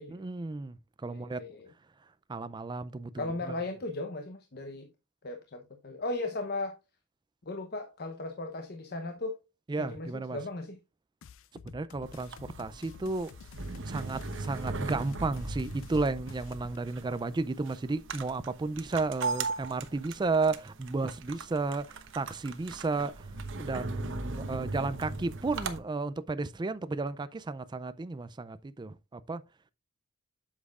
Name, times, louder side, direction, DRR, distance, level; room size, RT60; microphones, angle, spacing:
voice 1, 0.1-1.4 2.3-3.5 9.7-10.4 11.6-13.3 13.8-23.3 23.6-29.4, right 3 dB, 20° right, 0.4 m, -33 dB
voice 2, 1.0-1.7 3.2-4.9 5.2-6.8 7.5-9.4 9.8-10.8, left 2 dB, 45° left, 0.9 m, -37 dB
sound 1, 11.2-16.8, left 6 dB, 65° left, 0.4 m, -50 dB
sound 2, 12.1-25.8, right 3 dB, 60° right, 1.0 m, -39 dB
8.2 x 7.4 x 2.4 m
head